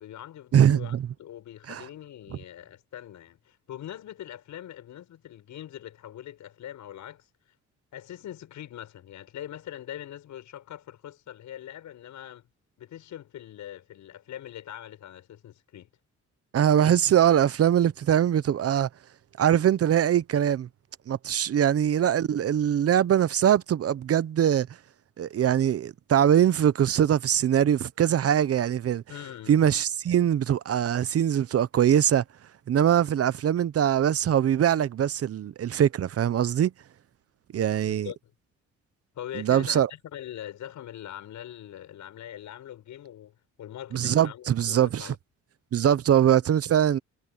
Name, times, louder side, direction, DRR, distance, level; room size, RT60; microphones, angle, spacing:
voice 1, 0.0-7.3 7.9-12.5 12.8-15.9 29.1-29.6 37.9-38.2 39.1-45.2, left 11 dB, 75° left, 6.8 m, -42 dB
voice 2, 0.5-1.1 1.7-1.9 16.5-18.9 19.4-20.7 21.1-24.7 25.2-29.0 29.5-32.2 32.7-36.7 37.5-38.1 39.3-39.9 43.9-45.1 45.7-47.0, right 10 dB, 50° right, 0.8 m, -22 dB
cardioid pair, 90°, 30 cm